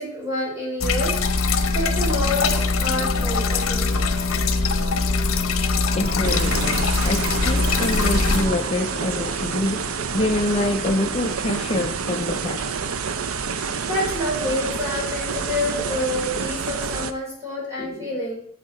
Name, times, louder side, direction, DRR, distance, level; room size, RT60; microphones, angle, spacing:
voice 1, 0.0-4.0 13.5-18.5, left 1 dB, 15° right, 4.5 m, -28 dB
sound 1, 0.8-8.4, left 4 dB, 75° left, 0.9 m, -22 dB
sound 2, 1.2-12.2, right 2 dB, 55° right, 1.5 m, -37 dB
voice 2, 5.9-12.8, left 2 dB, 30° left, 0.5 m, -26 dB
sound 3, 6.2-17.1, right 5 dB, 80° right, 0.6 m, -28 dB
9.3 x 7.1 x 4.2 m
head